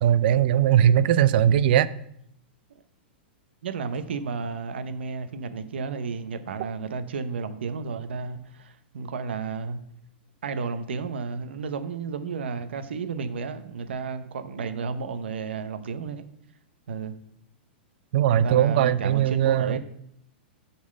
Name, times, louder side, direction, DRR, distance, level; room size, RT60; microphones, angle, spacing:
voice 1, 0.0-1.9 18.1-19.8, right 10 dB, 60° right, 0.5 m, -20 dB
voice 2, 3.6-9.8 10.4-16.2 16.9-17.1 18.4-19.8, right 5 dB, 80° right, 0.9 m, -32 dB
7.1 x 4.3 x 6.5 m
hypercardioid pair, 130°, 6 cm